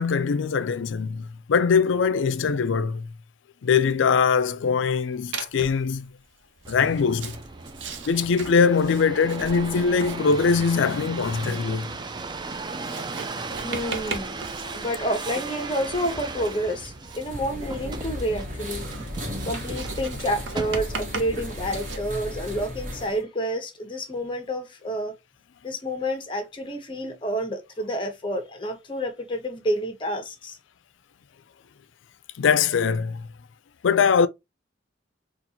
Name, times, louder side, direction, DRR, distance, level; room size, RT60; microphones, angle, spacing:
voice 1, 0.0-3.1 3.6-6.1 6.7-7.4 8.1-12.0 14.6-14.7 32.4-33.3 33.8-34.3, left 5 dB, 75° left, 0.4 m, -22 dB
Writing, 5.3-5.9 6.6-22.0, right 4 dB, 75° right, 0.7 m, -39 dB
sound 1, 6.6-21.2 21.8-22.3, right 3 dB, 25° right, 0.3 m, -37 dB
voice 2, 13.6-14.5 14.7-18.9 19.4-25.2 25.6-30.6, equal, 25° left, 0.9 m, -29 dB
sound 2, 17.2-23.2, left 1 dB, 40° right, 1.2 m, -35 dB
4.2 x 2.4 x 2.7 m
head